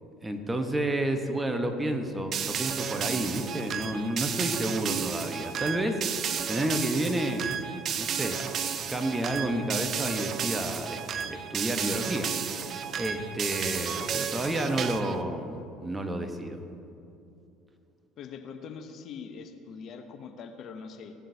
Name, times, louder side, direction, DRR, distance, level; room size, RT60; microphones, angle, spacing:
voice 1, 0.2-6.2 6.5-7.6 8.0-16.6, right 1 dB, 15° right, 6 dB, 1.0 m, -30 dB
sound 1, 2.3-15.2, right 8 dB, 50° right, 0.5 m, -33 dB
voice 2, 18.2-21.1, left 6 dB, 55° left, 6 dB, 0.8 m, -42 dB
16.0 x 7.4 x 2.8 m, 2.7 s
hypercardioid pair, 65°, 0 cm